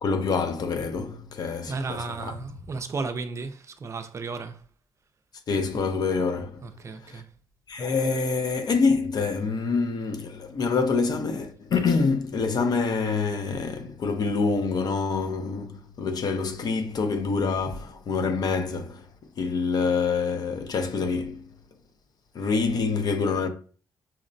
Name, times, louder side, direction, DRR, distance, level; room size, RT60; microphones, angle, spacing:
voice 1, 0.0-2.3 5.5-6.6 7.1-7.2 7.7-19.1 19.4-21.4 22.3-23.5, left 4 dB, 55° left, 0.6 m, -26 dB
voice 2, 1.7-4.6 6.6-7.3, right 4 dB, 40° right, 0.4 m, -34 dB
5.7 x 2.1 x 2.6 m
cardioid pair, 95°, 8 cm